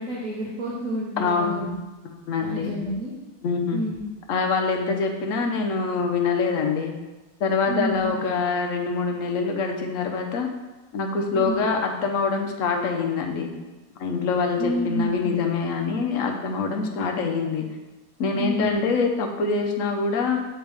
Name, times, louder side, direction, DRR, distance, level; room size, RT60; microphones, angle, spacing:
voice 1, 0.0-1.7 2.4-3.1 3.7-4.0 7.7-8.1 11.3-11.6 14.6-15.3 18.3-18.7, equal, 60° right, -5 dB, 1.2 m, -29 dB
voice 2, 1.2-1.6 2.1-2.7 3.4-3.8 4.3-6.9 7.4-10.5 10.9-13.5 14.0-17.7 18.2-20.5, left 4 dB, 60° left, 3 dB, 1.0 m, -25 dB
6.5 x 4.4 x 3.4 m, 1.1 s
omnidirectional pair, 1.7 m